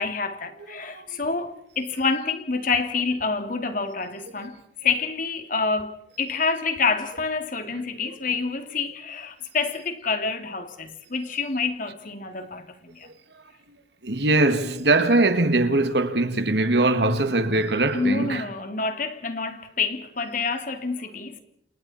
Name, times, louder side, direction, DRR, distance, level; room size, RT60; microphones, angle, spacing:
voice 1, 0.0-13.1 17.9-21.4, left 4 dB, 50° left, 2.8 m, -27 dB
voice 2, 0.8-1.2 13.3-13.8 14.0-18.5, right 2 dB, 75° right, 2.1 m, -22 dB
29.5 x 28.5 x 4.4 m
head